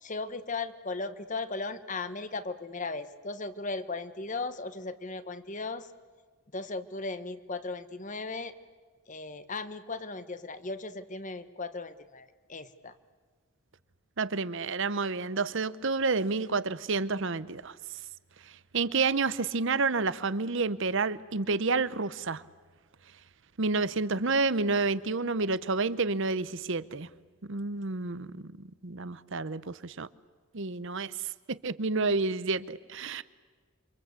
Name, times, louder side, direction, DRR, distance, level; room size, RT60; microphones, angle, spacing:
voice 1, 0.0-5.9 6.5-8.5 9.1-12.9, left 3 dB, 35° left, 1.3 m, -37 dB
voice 2, 14.2-17.8 18.7-22.4 23.6-27.1 27.5-30.1 30.5-31.1 31.5-33.2, right 3 dB, 60° right, 0.9 m, -29 dB
28.5 x 25.5 x 8.3 m
head